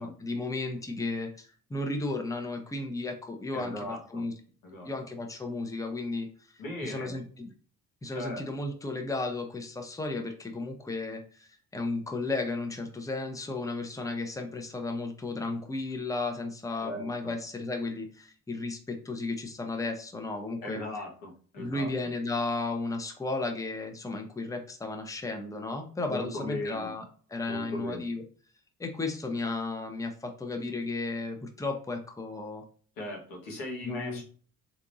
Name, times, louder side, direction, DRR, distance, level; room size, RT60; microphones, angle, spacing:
voice 1, 0.0-4.3 4.8-6.3 6.5-7.5 8.0-20.8 21.6-27.0 27.3-28.2 28.8-32.6 33.8-34.2, left 3 dB, 10° left, 5 dB, 0.7 m, -34 dB
voice 2, 3.5-4.2 4.6-4.9 6.6-7.2 8.1-8.4 16.8-17.3 20.6-21.9 26.1-26.9 27.5-28.0 33.0-34.2, left 1 dB, 85° left, -1 dB, 1.2 m, -38 dB
3.4 x 2.9 x 2.6 m, 0.43 s
supercardioid pair, 60°, 36 cm